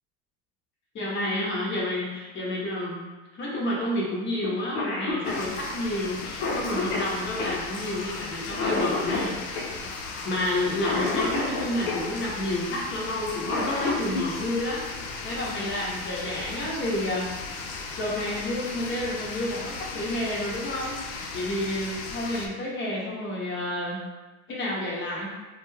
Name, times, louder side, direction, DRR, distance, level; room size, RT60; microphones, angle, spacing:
voice 1, 0.9-3.0 3.3-9.9 10.2-14.8 15.2-17.3 18.0-24.0 24.5-25.3, left 1 dB, 25° left, -4 dB, 0.8 m, -30 dB
Cough, 4.4-4.5 4.7-12.1 13.2-14.2 15.9-16.0 17.0-17.3 17.7-17.8 18.2-18.7, left 3 dB, 50° left, 0.9 m, -30 dB
sound 1, 5.2-22.5, left 4 dB, 70° left, 0.6 m, -37 dB
2.4 x 2.3 x 3.2 m, 1.3 s
hypercardioid pair, 115°, 46 cm